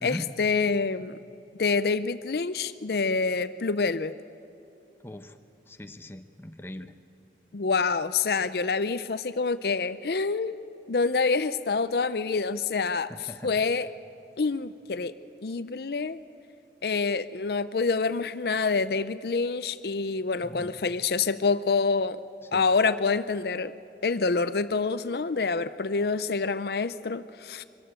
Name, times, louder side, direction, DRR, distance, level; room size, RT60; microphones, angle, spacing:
voice 1, 0.0-1.2 1.6-4.1 7.5-10.6 10.9-13.9 14.4-15.1 15.4-16.2 16.8-22.2 22.5-23.7 24.0-27.6, left 4 dB, 60° left, 13 dB, 0.5 m, -27 dB
voice 2, 5.0-5.4 5.7-6.9 13.1-13.6 20.4-20.8 22.5-22.6, left 1 dB, 15° left, 7 dB, 0.8 m, -40 dB
23.5 x 14.5 x 8.9 m, 2.8 s
head